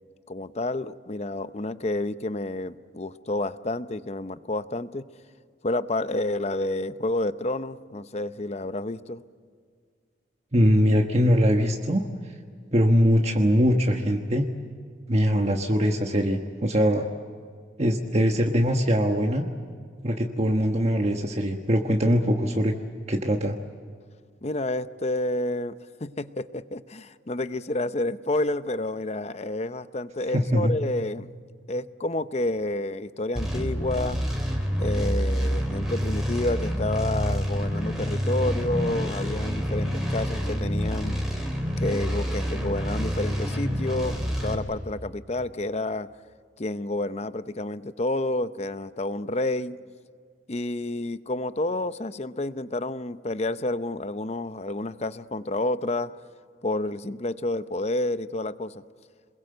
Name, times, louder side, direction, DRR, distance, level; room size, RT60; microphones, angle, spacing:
voice 1, 0.3-5.0 5.6-9.2 24.4-25.7 26.0-31.3 31.7-34.2 34.8-41.2 41.8-46.1 46.6-49.8 50.5-56.1 56.6-58.8, left 2 dB, 35° left, 13 dB, 0.7 m, -29 dB
voice 2, 10.5-12.0 12.7-14.5 15.1-17.1 17.8-19.5 20.0-22.7 23.1-23.6 30.3-30.7, equal, 35° right, 2 dB, 1.3 m, -22 dB
sound 1, 33.3-44.5, equal, 5° right, 4.1 m, -27 dB
27.5 x 21.5 x 7.8 m, 2.1 s
head